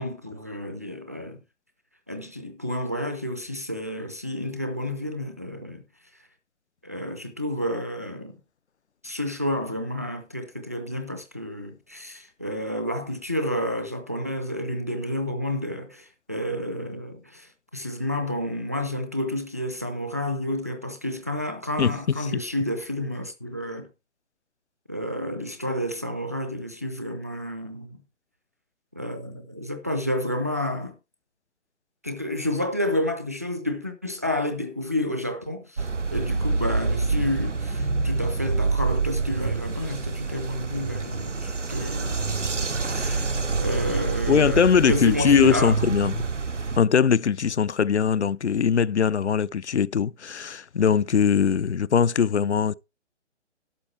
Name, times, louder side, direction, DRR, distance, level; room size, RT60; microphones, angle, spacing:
voice 1, 0.0-1.4 2.1-5.8 6.8-8.4 9.0-23.9 24.9-28.0 28.9-31.0 32.0-43.3 43.6-45.7, left 1 dB, 15° right, 0.4 m, -30 dB
sound 1, 35.8-46.8, right 4 dB, 90° right, 0.9 m, -27 dB
voice 2, 44.3-46.3 46.8-52.7, left 7 dB, 70° left, 0.5 m, -21 dB
12.0 x 6.5 x 4.5 m
figure-of-eight pair, 135°, 36 cm